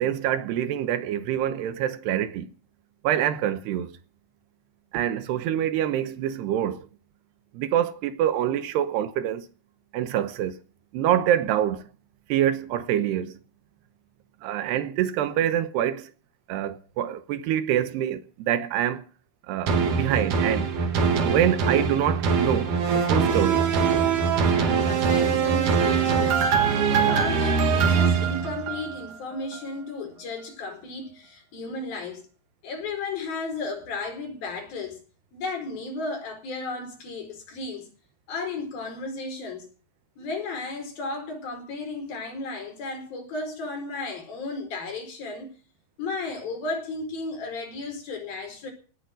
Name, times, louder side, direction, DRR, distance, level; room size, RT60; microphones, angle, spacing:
voice 1, 0.0-2.5 3.0-4.0 4.9-6.9 7.5-9.5 9.9-10.6 10.9-11.8 12.3-13.4 14.4-16.1 16.5-19.0 19.5-20.7 21.2-23.7, right 11 dB, 75° right, 3.0 m, -25 dB
sound 1, 19.7-29.1 29.5-29.6, right 6 dB, 55° right, 2.9 m, -22 dB
voice 2, 24.4-26.5 26.8-32.3 32.6-35.0 35.3-37.9 38.3-39.7 40.2-45.5 46.0-48.7, left 3 dB, 55° left, 6.4 m, -34 dB
18.0 x 9.1 x 7.7 m
omnidirectional pair, 5.0 m